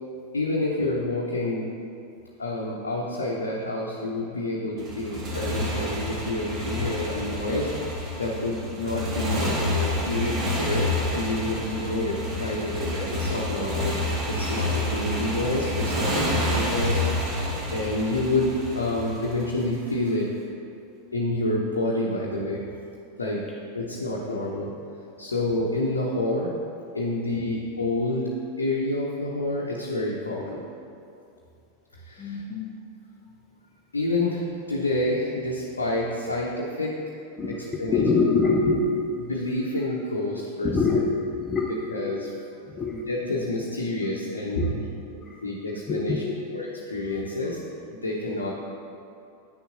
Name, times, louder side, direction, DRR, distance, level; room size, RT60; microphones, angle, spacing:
voice 1, 0.3-1.7 2.4-7.7 8.2-13.9 14.3-17.4 17.7-20.3 21.1-22.6 23.2-23.4 23.7-24.7 25.2-26.5 26.9-28.3 28.6-30.6 31.9-32.4 33.9-36.9 37.5-38.1 39.2-41.0 41.6-42.3 42.7-44.8 45.4-46.2 46.5-48.5, left 2 dB, 75° left, -4 dB, 0.8 m, -28 dB
Motorcycle, 4.8-19.9, left 1 dB, 30° right, 1.2 m, -29 dB
voice 2, 32.2-32.8 36.5-36.6 37.4-39.2 40.6-41.9 42.7-43.1 44.6-44.7 45.2-45.4 45.9-46.3, left 3 dB, 20° left, -2 dB, 0.6 m, -25 dB
9.6 x 6.7 x 2.6 m, 2.5 s
figure-of-eight pair, 90°, 0 cm